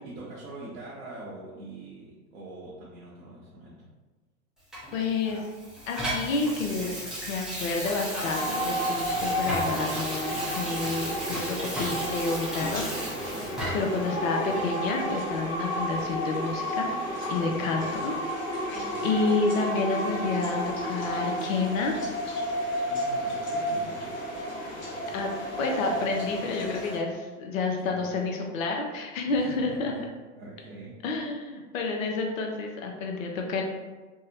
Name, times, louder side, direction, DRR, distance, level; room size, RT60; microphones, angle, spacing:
voice 1, 0.0-3.9 13.3-13.8 17.4-17.7 18.7-19.1 22.7-24.2 27.6-28.1 29.2-30.0 30.3-31.0, right 2 dB, 65° right, -7 dB, 0.8 m, -44 dB
Water tap faucet / Sink (filling or washing), 4.7-14.0 14.5-14.7, equal, ahead, 0.5 m, -35 dB
voice 2, 4.9-5.5 5.9-6.9 7.3-12.8 13.7-16.9 17.3-18.1 18.5-21.9 25.1-25.3 25.6-29.9 31.0-33.6, left 3 dB, 65° left, 1 dB, 0.6 m, -29 dB
sound 1, 8.2-27.0, equal, 25° left, 1.0 m, -32 dB
2.7 x 2.0 x 2.6 m, 1.3 s
hypercardioid pair, 100°, 44 cm